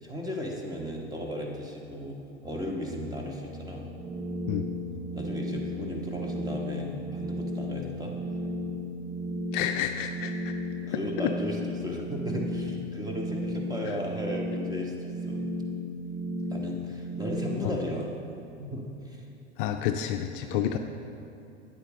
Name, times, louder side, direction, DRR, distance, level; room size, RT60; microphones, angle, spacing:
voice 1, 0.0-2.2 2.4-3.9 5.1-8.1 10.9-15.4 16.5-18.1 18.6-19.2 20.4-20.7, equal, 10° right, 0 dB, 1.2 m, -35 dB
sound 1, 2.4-17.2, left 1 dB, 20° left, 0.7 m, -48 dB
sound 2, 4.0-17.6, left 1 dB, 40° right, 0.8 m, -34 dB
voice 2, 9.5-10.5 11.2-11.4 13.9-14.0 17.6-17.8 19.6-20.8, left 10 dB, 50° left, 6 dB, 0.5 m, -30 dB
9.2 x 8.2 x 3.1 m, 2.7 s
hypercardioid pair, 95°, 34 cm